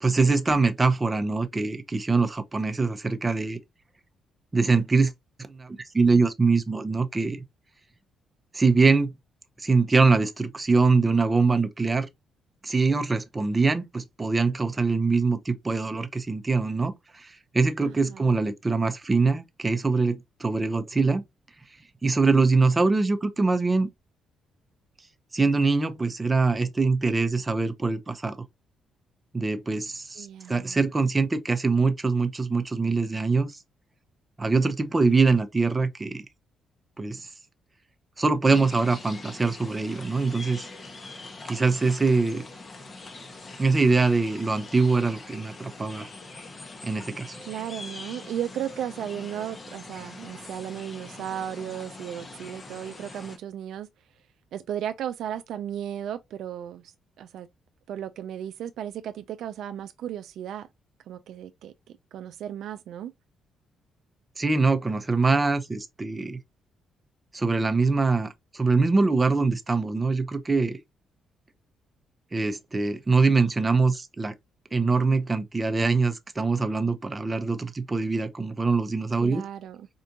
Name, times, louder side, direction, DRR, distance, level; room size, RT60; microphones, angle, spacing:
voice 1, 0.0-3.6 4.5-5.1 5.5-7.4 8.5-9.1 9.6-12.1 12.6-21.2 22.0-23.9 25.3-28.4 29.3-33.6 34.4-36.2 37.0-37.3 38.2-40.7 41.4-42.4 43.6-46.1 46.8-47.4 64.4-66.4 67.3-70.8 72.3-74.3 74.7-79.4, right 4 dB, 25° right, 0.7 m, -23 dB
voice 2, 17.8-18.4 30.2-30.8 47.4-53.9 54.5-56.9 57.2-57.5 57.9-60.7 61.1-63.1 79.2-79.9, right 10 dB, 75° right, 0.4 m, -35 dB
sound 1, 38.5-53.4, left 3 dB, 35° left, 1.0 m, -43 dB
4.5 x 2.5 x 2.7 m
cardioid pair, 90°, 0 cm